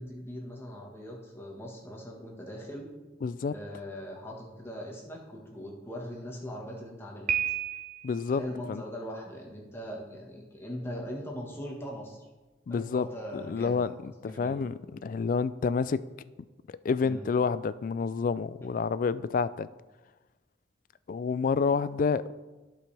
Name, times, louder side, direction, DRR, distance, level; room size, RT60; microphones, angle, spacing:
voice 1, 0.0-2.9 3.5-7.3 8.4-12.2 12.7-14.7 17.0-17.2, equal, 15° left, -2 dB, 1.5 m, -40 dB
voice 2, 3.2-3.5 8.0-8.4 8.7-8.8 12.7-13.1 13.3-16.0 16.8-19.7 21.1-22.3, left 5 dB, 50° left, 16 dB, 0.3 m, -29 dB
Piano, 7.3-8.2, right 9 dB, 40° right, 0.6 m, -31 dB
14.5 x 5.3 x 3.4 m, 1.2 s
head